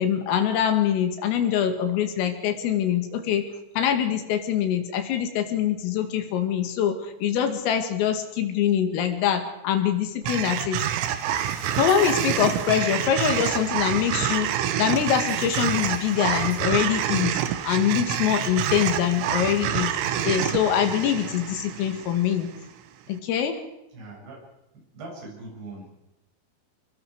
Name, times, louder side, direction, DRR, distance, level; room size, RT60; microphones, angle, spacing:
voice 1, 0.0-3.5 3.8-10.8 11.8-17.4 17.6-22.5 23.1-23.6, left 9 dB, 80° left, 7 dB, 4.7 m, -24 dB
sound 1, 10.2-22.6, right 10 dB, 75° right, 3.5 m, -27 dB
Insect, 11.1-12.8 13.3-13.6 14.8-16.7, right 1 dB, 15° right, 4.9 m, -45 dB
voice 2, 23.9-24.4 24.7-25.9, right 2 dB, 50° right, -1 dB, 9.0 m, -41 dB
25.5 x 22.0 x 4.9 m, 0.89 s
omnidirectional pair, 6.0 m